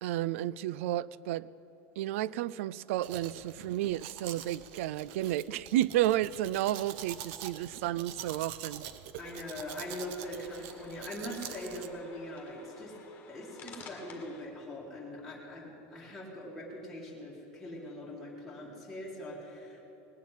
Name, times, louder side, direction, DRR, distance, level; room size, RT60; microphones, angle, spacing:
voice 1, 0.0-1.5 2.0-8.8, right 14 dB, 85° right, 0.4 m, -32 dB
Domestic sounds home sounds, 3.0-11.9, right 10 dB, 60° right, 0.8 m, -45 dB
sound 1, 9.2-14.4, left 5 dB, 25° left, 1.8 m, -53 dB
voice 2, 9.2-12.9 13.3-19.9, left 1 dB, ahead, 2.3 m, -42 dB
19.5 x 7.3 x 9.1 m
supercardioid pair, 165°, 7 cm